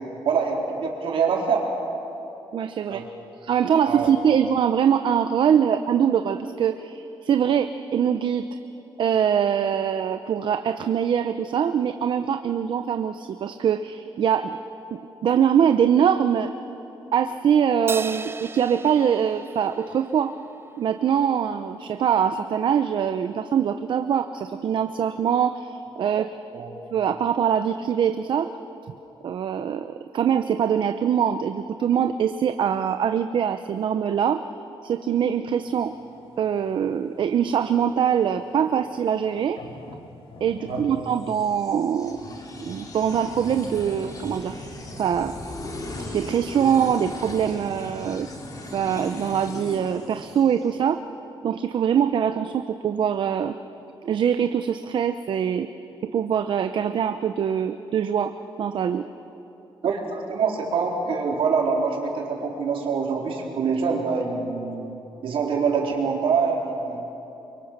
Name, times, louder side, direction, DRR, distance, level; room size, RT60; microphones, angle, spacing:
voice 1, 0.0-1.7 2.9-3.1 3.8-4.1 26.5-26.8 40.7-41.0 59.8-64.9 65.2-67.0, right 5 dB, 75° right, -1 dB, 4.1 m, -25 dB
voice 2, 2.5-3.0 3.4-8.5 9.0-14.6 14.9-16.5 17.1-20.3 20.8-26.3 26.9-28.5 29.2-34.4 34.8-35.9 36.4-39.6 40.4-42.2 42.6-44.6 45.0-45.3 46.1-48.3 48.7-51.0 51.4-53.5 54.0-55.7 56.0-58.3 58.6-59.1, right 8 dB, 60° right, 9 dB, 0.7 m, -23 dB
Crash cymbal, 17.9-20.6, right 4 dB, 25° right, 0.6 m, -35 dB
sound 1, 35.5-41.3, left 3 dB, 80° left, 1.9 m, -46 dB
sound 2, 41.1-50.8, left 1 dB, 40° left, 3.8 m, -37 dB
29.5 x 23.5 x 6.7 m, 3.0 s
cardioid pair, 130°, 9 cm